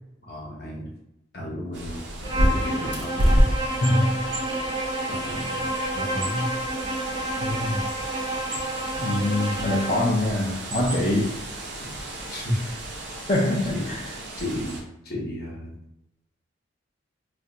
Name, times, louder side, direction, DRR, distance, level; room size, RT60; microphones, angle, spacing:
voice 1, 0.2-0.9 1.3-2.1 2.3-3.4 5.1-6.5 11.8-12.0 12.3-12.6 13.7-14.0 14.4-15.7, left 1 dB, 55° left, -2 dB, 0.9 m, -33 dB
Bird, 1.7-14.8, equal, 60° right, 0.6 m, -30 dB
Bowed string instrument, 2.2-10.1, right 1 dB, 20° right, 0.6 m, -30 dB
voice 2, 3.8-4.2 7.4-7.9 9.0-11.4 13.3-14.0, left 1 dB, 35° left, -6 dB, 0.4 m, -24 dB
2.5 x 2.2 x 3.7 m, 0.83 s
head